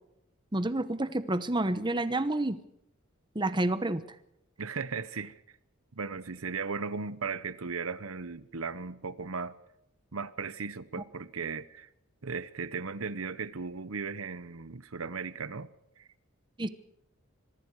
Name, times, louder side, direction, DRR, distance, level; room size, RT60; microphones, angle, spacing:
voice 1, 0.5-2.6 3.3-4.0 16.6-16.7, right 2 dB, 20° right, 1.0 m, -29 dB
voice 2, 4.6-5.4 5.9-9.6 10.1-11.9 12.2-15.7 16.0-16.1, right 5 dB, 80° right, 1.0 m, -36 dB
25.5 x 23.5 x 4.8 m
head